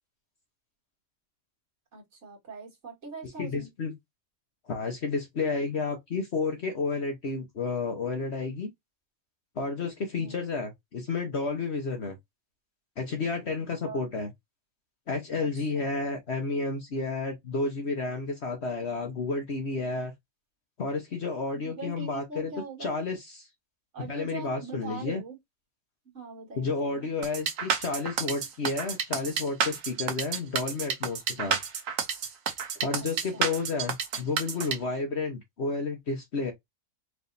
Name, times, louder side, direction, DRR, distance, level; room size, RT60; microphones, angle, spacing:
voice 1, 1.9-3.7 10.2-10.4 13.8-14.1 15.4-15.5 15.7-15.9 21.5-23.0 23.9-25.4 26.1-27.1 33.0-33.4, right 4 dB, 60° right, 2.1 m, -42 dB
voice 2, 3.4-3.9 4.6-8.7 9.6-12.2 13.0-14.3 15.1-20.1 20.8-22.5 22.8-23.5 24.1-25.2 26.6-31.6 32.8-36.5, left 3 dB, 55° left, 1.3 m, -31 dB
sound 1, 27.2-34.8, right 6 dB, 75° right, 1.3 m, -30 dB
4.9 x 3.3 x 2.7 m
omnidirectional pair, 1.4 m